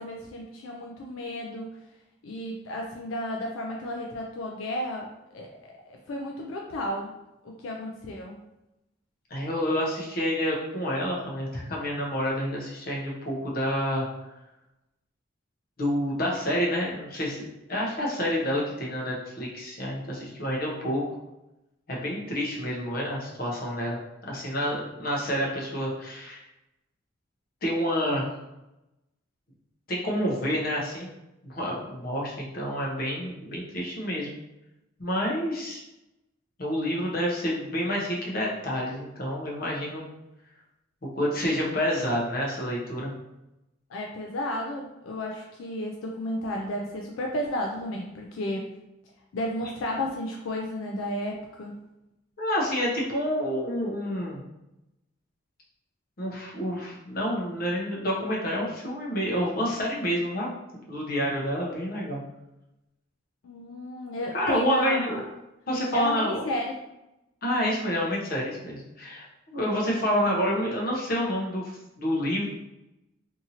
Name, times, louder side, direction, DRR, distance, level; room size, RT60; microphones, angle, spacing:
voice 1, 0.0-1.7 2.2-5.5 5.9-7.1 7.4-8.4 43.9-48.7 49.3-51.8 63.4-65.2 65.9-66.8, left 1 dB, 75° left, 0 dB, 0.3 m, -32 dB
voice 2, 9.3-14.1 15.8-17.4 17.7-21.0 21.9-24.0 24.3-26.4 27.6-28.3 29.9-31.1 31.4-34.3 35.0-35.8 36.6-40.0 41.1-43.1 52.4-54.4 56.2-60.5 60.9-62.2 64.3-65.2 65.7-66.4 67.4-71.6 72.0-72.5, equal, 45° left, -3 dB, 0.7 m, -28 dB
2.7 x 2.6 x 2.8 m, 0.93 s
head